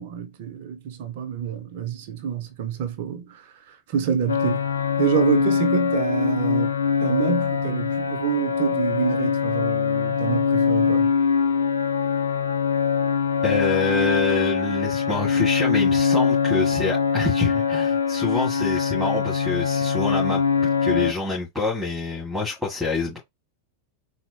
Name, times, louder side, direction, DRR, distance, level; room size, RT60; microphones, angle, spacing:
voice 1, 0.0-3.4 3.9-4.7 5.0-6.7 7.0-11.1, right 7 dB, 50° right, 0.8 m, -26 dB
sound 1, 4.3-21.1, left 6 dB, 70° left, 0.4 m, -23 dB
voice 2, 13.4-23.2, left 3 dB, ahead, 2.0 m, -27 dB
4.2 x 2.6 x 2.9 m
figure-of-eight pair, 90°, 0 cm